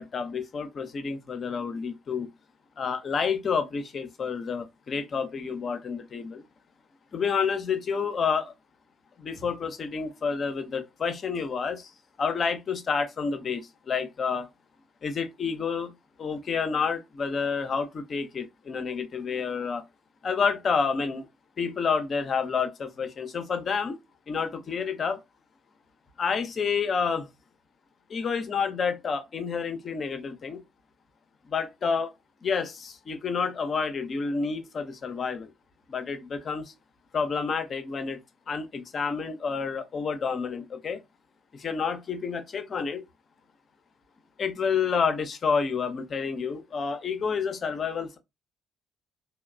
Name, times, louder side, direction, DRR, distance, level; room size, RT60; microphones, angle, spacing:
voice 1, 0.0-2.3 2.8-6.4 7.1-8.5 9.2-11.9 12.2-13.6 13.9-14.5 15.0-15.9 16.2-19.8 20.2-21.3 21.6-24.0 24.3-25.2 26.2-27.3 28.1-30.6 31.5-32.1 32.4-35.5 35.9-36.7 37.1-38.2 38.5-41.0 41.5-43.0 44.4-48.2, left 5 dB, 40° left, 0.5 m, -29 dB
2.9 x 2.0 x 2.3 m
figure-of-eight pair, 45°, 0 cm